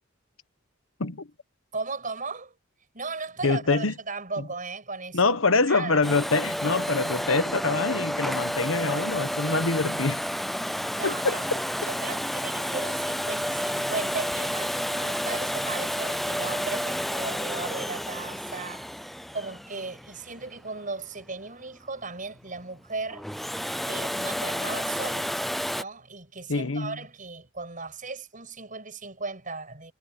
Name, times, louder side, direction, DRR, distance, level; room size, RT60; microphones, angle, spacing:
voice 1, 1.7-2.5 2.9-6.0 6.6-6.7 10.9-11.5 11.8-18.9 19.3-23.3 23.8-25.4 25.7-29.9, right 3 dB, 40° right, 6.5 m, -36 dB
voice 2, 3.4-3.9 5.1-10.2 11.0-11.4 26.5-26.9, left 3 dB, 75° left, 1.2 m, -25 dB
Domestic sounds home sounds, 6.0-20.8 23.1-25.8, equal, ahead, 0.5 m, -30 dB
head